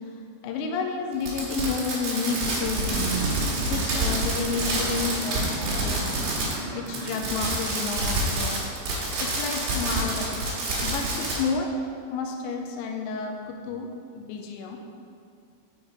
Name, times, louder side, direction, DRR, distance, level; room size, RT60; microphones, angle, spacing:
voice 1, 0.4-2.9 3.6-6.1 6.7-8.6 9.2-11.7 12.1-13.9 14.1-14.8, left 5 dB, 85° left, 2 dB, 2.5 m, -31 dB
Fireworks, 1.2-6.6 6.9-11.4, right 2 dB, 55° right, 3.2 m, -27 dB
sound 1, 2.3-7.3, right 4 dB, 85° right, 3.4 m, -35 dB
7.1 x 6.4 x 4.8 m, 2.3 s
omnidirectional pair, 5.8 m